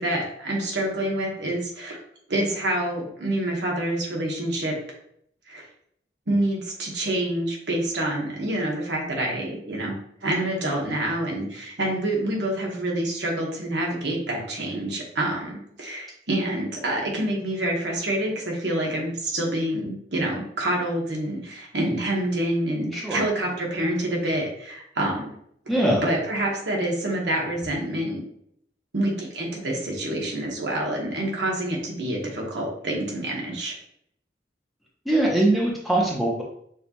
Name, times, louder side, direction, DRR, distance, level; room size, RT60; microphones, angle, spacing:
voice 1, 0.0-2.0 2.3-4.8 5.5-5.7 6.3-10.0 10.2-25.3 26.0-28.2 28.9-33.8, right 1 dB, 80° right, -1 dB, 1.2 m, -27 dB
voice 2, 25.7-26.0 35.1-36.4, right 1 dB, ahead, -4 dB, 0.8 m, -22 dB
6.2 x 2.4 x 3.0 m, 0.68 s
head